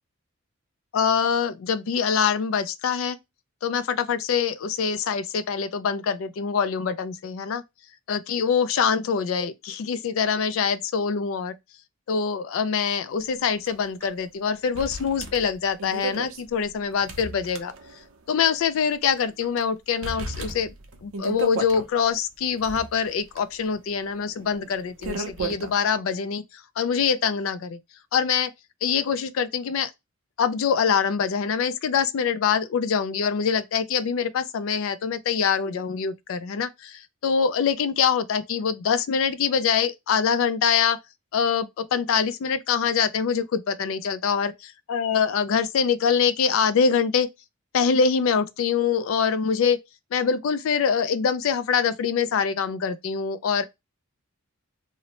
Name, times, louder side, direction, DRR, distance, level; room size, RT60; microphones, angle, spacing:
voice 1, 0.9-3.2 3.6-7.6 8.1-11.6 12.1-17.7 18.3-20.7 21.0-27.8 28.1-28.5 28.8-29.9 30.4-41.0 41.3-47.3 47.7-49.8 50.1-53.6, left 6 dB, 65° left, 0.3 m, -24 dB
sound 1, 13.7-13.8 14.0-14.1 14.7-18.1 18.5-18.6 19.2-19.6 20.0-21.9 22.4-25.7, right 3 dB, 65° right, 0.5 m, -35 dB
2.7 x 2.0 x 2.8 m
head